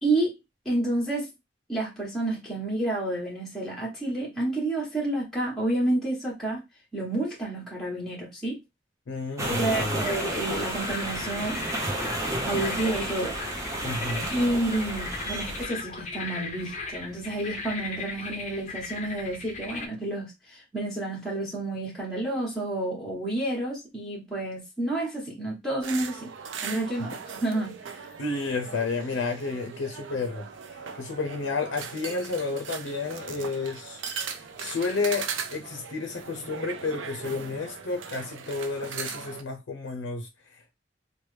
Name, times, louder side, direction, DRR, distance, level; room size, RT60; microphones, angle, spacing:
voice 1, 0.0-0.4 0.6-1.3 1.7-6.6 6.9-8.6 9.5-11.7 12.5-13.4 14.3-26.3 26.6-28.1, right 2 dB, ahead, 1.1 m, -30 dB
voice 2, 9.1-10.1 13.8-14.3 28.2-34.0 34.3-40.7, left 4 dB, 90° left, 0.5 m, -31 dB
sound 1, 9.4-15.6, right 1 dB, 15° right, 0.7 m, -31 dB
sound 2, 10.0-19.9, left 4 dB, 40° left, 0.5 m, -38 dB
sound 3, 25.8-39.4, right 6 dB, 85° right, 0.5 m, -39 dB
3.0 x 2.1 x 3.2 m
head